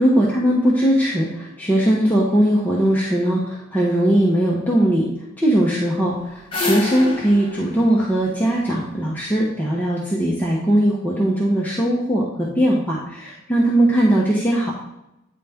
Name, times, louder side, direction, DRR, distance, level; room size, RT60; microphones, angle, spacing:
voice 1, 0.0-5.1 5.4-14.7, right 1 dB, 10° left, -5 dB, 0.9 m, -19 dB
sound 1, 6.0-9.2, left 3 dB, 25° left, 1.4 m, -28 dB
8.8 x 4.2 x 3.5 m, 0.86 s
head